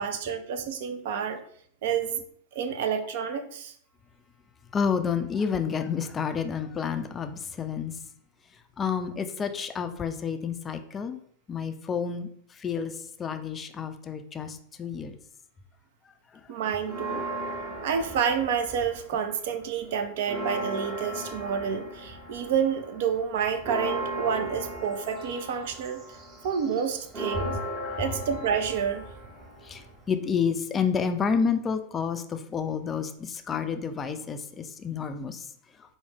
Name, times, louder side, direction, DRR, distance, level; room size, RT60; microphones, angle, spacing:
voice 1, 0.0-1.4 1.8-2.2 2.5-3.7 16.5-17.2 17.8-26.0 26.4-27.6 28.0-29.0, right 7 dB, 55° right, 0.4 m, -29 dB
voice 2, 4.7-7.9 8.8-11.2 11.5-12.3 12.6-12.9 13.2-15.1 27.8-28.0 29.6-35.4, left 6 dB, 20° left, 0.3 m, -29 dB
sound 1, 16.8-19.2 19.6-30.1, right 1 dB, 20° right, 0.8 m, -37 dB
4.5 x 2.1 x 3.4 m
figure-of-eight pair, 90°, 0 cm